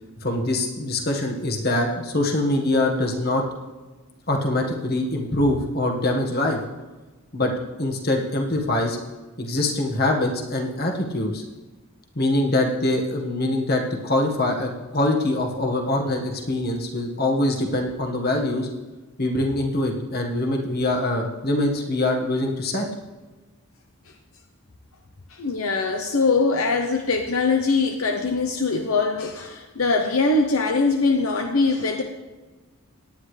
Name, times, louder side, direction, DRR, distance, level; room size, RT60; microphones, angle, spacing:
voice 1, 0.2-3.4 4.3-6.6 7.3-7.5 7.8-9.0 9.4-11.4 12.1-18.7 19.2-22.9, left 1 dB, 45° left, 1 dB, 1.6 m, -23 dB
voice 2, 25.3-32.0, left 3 dB, 70° left, 4 dB, 0.9 m, -22 dB
17.5 x 9.9 x 3.3 m, 1.2 s
head